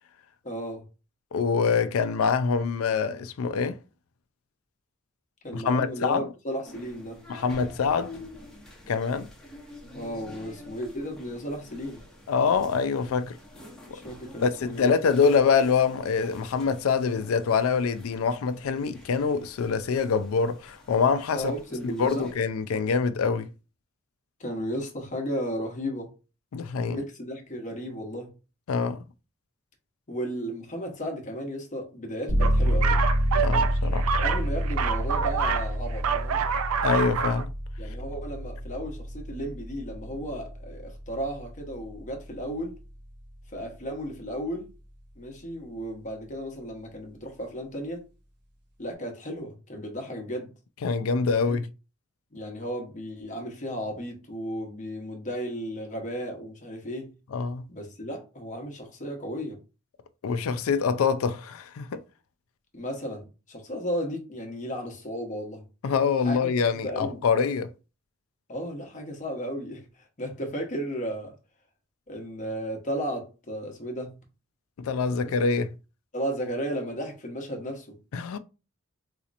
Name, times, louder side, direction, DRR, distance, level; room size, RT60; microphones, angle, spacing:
voice 1, 0.4-0.8 5.4-7.2 9.9-12.0 13.9-15.0 21.3-22.3 24.4-26.1 26.9-28.3 30.1-33.0 34.2-36.4 37.8-42.8 43.5-44.7 45.2-48.1 48.8-50.5 51.4-51.6 52.3-57.1 57.7-59.6 62.7-65.6 66.2-66.5 66.7-67.2 68.5-71.3 72.1-74.2 75.2-75.3 76.1-78.0, equal, 35° left, 0.9 m, -34 dB
voice 2, 1.3-3.8 5.5-6.3 7.3-8.2 8.9-9.3 12.3-13.4 14.4-21.5 21.8-23.5 26.5-27.0 28.7-29.0 33.4-34.1 36.8-37.5 50.8-51.7 57.3-57.6 60.2-62.0 65.8-67.7 74.8-75.7 78.1-78.4, left 5 dB, 75° left, 0.4 m, -25 dB
sound 1, 6.6-22.3, left 1 dB, ahead, 0.9 m, -47 dB
sound 2, 32.3-42.8, equal, 55° right, 1.6 m, -28 dB
sound 3, 32.4-35.7 35.9-37.4, right 6 dB, 85° right, 0.4 m, -27 dB
4.0 x 2.8 x 2.5 m
head